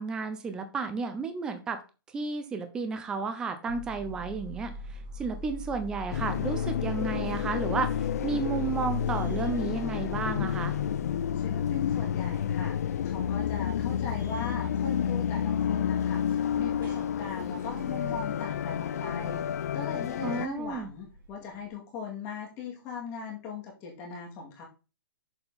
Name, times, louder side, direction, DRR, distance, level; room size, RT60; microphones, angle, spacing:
voice 1, 0.0-1.8 2.1-4.7 5.2-10.8 20.2-20.9, right 4 dB, 5° right, 8 dB, 0.5 m, -32 dB
sound 1, 3.7-21.7, equal, 70° right, 3.5 m, -43 dB
sound 2, 6.1-20.5, left 9 dB, 45° left, 0.3 m, -30 dB
voice 2, 11.3-19.5 19.7-24.6, left 5 dB, 20° left, 0 dB, 2.0 m, -39 dB
6.9 x 4.3 x 5.5 m, 0.31 s
hypercardioid pair, 170°, 12 cm